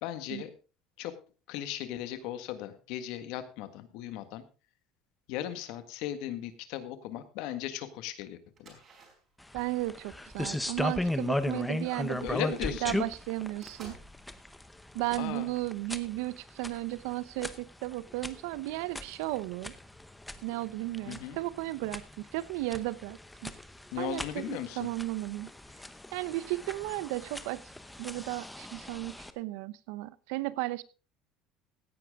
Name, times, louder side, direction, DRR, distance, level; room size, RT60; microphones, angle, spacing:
voice 1, 0.0-0.5 1.0-1.2 1.5-4.4 5.3-8.8 12.2-12.9 15.2-15.5 21.1-21.4 23.9-24.9, left 12 dB, 65° left, 11 dB, 1.6 m, -37 dB
sound 1, 8.5-12.4 12.8-12.9 13.2-14.0, right 3 dB, 30° right, 4.8 m, -55 dB
sound 2, 9.4-29.3, left 1 dB, 5° left, 0.8 m, -38 dB
voice 2, 9.5-13.9 14.9-19.7 20.4-23.5 24.0-25.5 26.1-27.6 28.0-30.8, right 19 dB, 80° right, 18 dB, 0.8 m, -35 dB
16.5 x 10.5 x 3.6 m, 0.34 s
cardioid pair, 170°, 0 cm